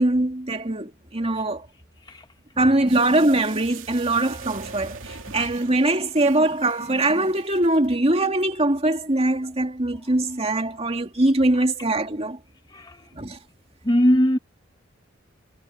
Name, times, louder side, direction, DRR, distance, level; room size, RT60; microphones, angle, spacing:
voice 1, 0.0-1.7 2.6-12.4 13.1-13.4, right 2 dB, 30° right, 2.4 m, -22 dB
sound 1, 2.9-7.9 8.2-8.3, right 5 dB, 75° right, 2.8 m, -43 dB
voice 2, 12.7-13.1 13.8-14.4, equal, 20° left, 1.2 m, -21 dB
head